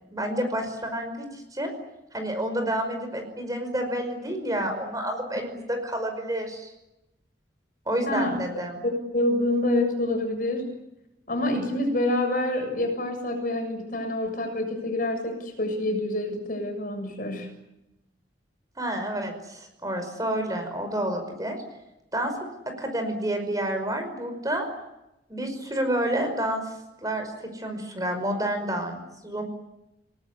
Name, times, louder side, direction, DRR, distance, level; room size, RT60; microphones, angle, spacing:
voice 1, 0.1-1.7 2.1-6.7 7.9-8.8 18.8-21.6 22.1-22.3 22.8-24.7 25.3-26.6 27.0-29.4, right 1 dB, 20° right, 6 dB, 5.4 m, -29 dB
voice 2, 8.1-8.4 8.8-10.7 11.3-17.5, left 1 dB, 45° left, 5 dB, 7.0 m, -27 dB
29.5 x 18.5 x 9.6 m, 0.91 s
head